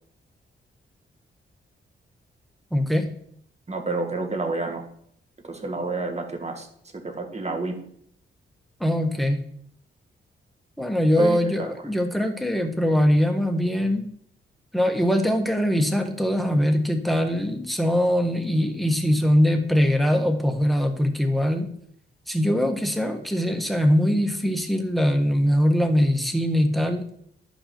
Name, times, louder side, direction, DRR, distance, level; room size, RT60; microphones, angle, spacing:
voice 1, 2.7-3.1 8.8-9.4 10.8-14.1 14.7-21.7 22.3-27.1, equal, ahead, 5 dB, 1.4 m, -22 dB
voice 2, 3.7-4.8 5.4-6.7 6.9-7.8 11.2-11.7, right 3 dB, 30° right, 4 dB, 1.8 m, -29 dB
11.0 x 5.4 x 4.4 m, 0.66 s
cardioid pair, 70°, 21 cm